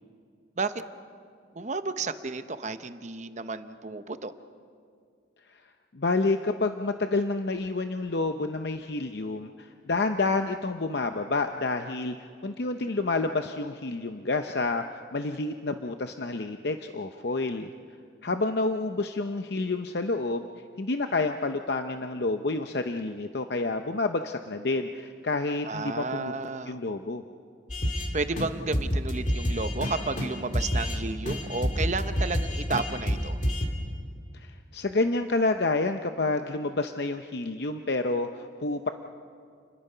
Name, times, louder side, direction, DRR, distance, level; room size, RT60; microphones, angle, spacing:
voice 1, 1.5-4.3 25.6-26.8 28.1-33.4, right 3 dB, 40° right, 10 dB, 0.8 m, -32 dB
voice 2, 5.9-17.7 18.2-20.5 20.8-26.3 26.7-27.2 34.3-38.9, left 3 dB, 55° left, 6 dB, 0.7 m, -29 dB
sound 1, 27.7-28.1 28.4-28.5 28.7-31.0 31.3-33.7, equal, 40° left, 2.6 m, -28 dB
29.5 x 21.5 x 5.6 m, 2.2 s
head